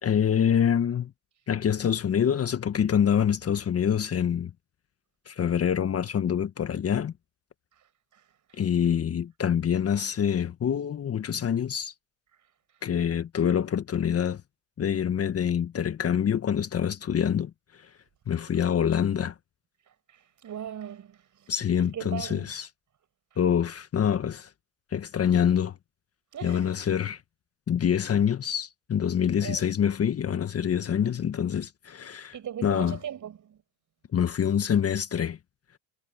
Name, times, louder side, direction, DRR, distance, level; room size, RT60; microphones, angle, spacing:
voice 1, 0.0-1.1 1.5-4.5 5.3-7.1 8.6-11.9 12.8-14.4 14.8-17.9 18.3-19.3 21.5-22.7 23.4-24.5 24.9-25.8 26.4-27.2 27.7-32.3 32.6-33.0 34.1-35.4, left 8 dB, 30° left, 1.6 m, -26 dB
voice 2, 20.1-22.5 26.3-26.7 29.4-29.6 32.3-33.6, right 9 dB, 40° right, 6.4 m, -39 dB
hypercardioid pair, 85°, 48 cm